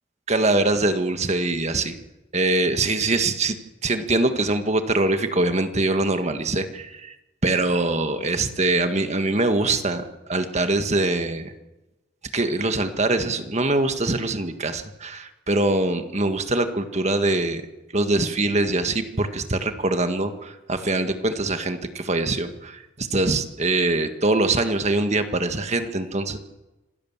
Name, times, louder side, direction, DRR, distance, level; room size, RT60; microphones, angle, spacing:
voice 1, 0.3-1.9 2.3-3.6 3.8-7.2 7.4-10.0 10.3-11.5 12.3-17.6 17.9-26.4, right 2 dB, 35° right, 8 dB, 1.7 m, -23 dB
26.5 x 17.0 x 7.4 m, 1.0 s
head